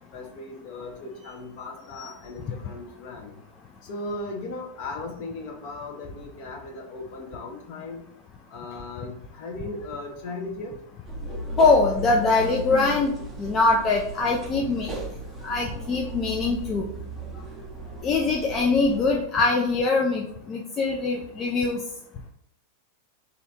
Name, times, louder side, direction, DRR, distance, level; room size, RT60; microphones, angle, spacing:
voice 1, 0.1-3.4 3.9-8.0 8.5-10.7, left 2 dB, 45° left, 1 dB, 0.9 m, -37 dB
sound 1, 11.1-19.2, right 2 dB, 10° right, 0.7 m, -36 dB
voice 2, 11.6-14.9 15.4-16.9 18.0-21.8, left 3 dB, 25° left, -1 dB, 0.5 m, -23 dB
3.1 x 2.7 x 4.0 m, 0.73 s
figure-of-eight pair, 90°, 0 cm